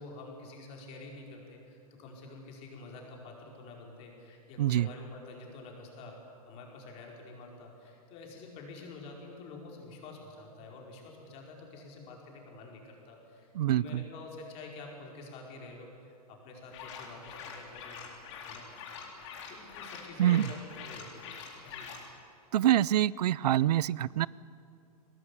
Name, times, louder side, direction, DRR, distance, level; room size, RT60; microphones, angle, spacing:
voice 1, 0.0-6.2 6.5-18.0 18.5-18.7 19.5-21.9, left 3 dB, 30° left, 0 dB, 4.9 m, -48 dB
voice 2, 4.6-4.9 13.6-14.0 20.2-20.5 22.5-24.3, right 12 dB, 85° right, 22 dB, 0.5 m, -25 dB
sound 1, 16.7-22.1, left 6 dB, 45° left, 4.0 m, -45 dB
22.5 x 19.0 x 10.0 m, 2.5 s
supercardioid pair, 160°, 20 cm